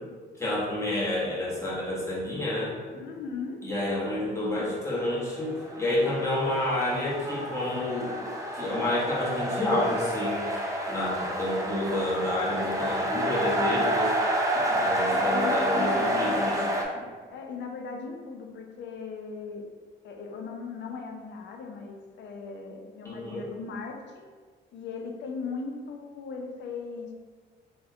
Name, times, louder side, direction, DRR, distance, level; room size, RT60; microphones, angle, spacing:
voice 1, 0.4-3.0 3.6-8.1 8.5-10.4 10.9-14.2 14.7-16.6 16.9-17.0 23.0-23.4, left 1 dB, 15° left, -7 dB, 1.1 m, -29 dB
voice 2, 3.0-3.6 15.0-16.8 17.3-19.6 20.0-24.3 24.7-27.1, left 4 dB, 65° left, 2 dB, 0.5 m, -38 dB
sound 1, 5.3-16.8, right 1 dB, 15° right, 0.4 m, -29 dB
3.4 x 2.1 x 2.7 m, 1.5 s
cardioid pair, 90°, 20 cm